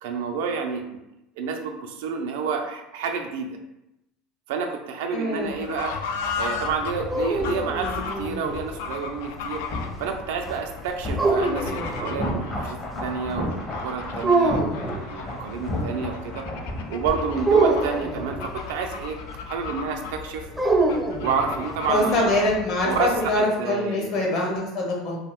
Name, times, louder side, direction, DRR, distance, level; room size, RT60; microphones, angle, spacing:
voice 1, 0.0-1.0 1.4-3.5 4.5-6.0 6.4-9.6 10.0-16.4 16.9-18.4 18.7-19.2 19.5-20.5 21.2-22.5 22.8-24.4, right 5 dB, 85° right, 4 dB, 0.4 m, -29 dB
voice 2, 5.1-5.5 21.9-25.2, left 1 dB, 55° left, -1 dB, 0.9 m, -24 dB
Fowl / Bird, 5.4-23.5, left 5 dB, 85° left, 0.3 m, -36 dB
sound 1, 6.2-19.7 19.9-20.1, left 1 dB, 30° left, 0.6 m, -35 dB
sound 2, 6.8-8.7 11.2-12.4 14.2-15.0 17.4-18.5 20.6-21.8, right 3 dB, 5° right, 0.4 m, -24 dB
2.4 x 2.2 x 3.5 m, 0.91 s
supercardioid pair, 130°, 0 cm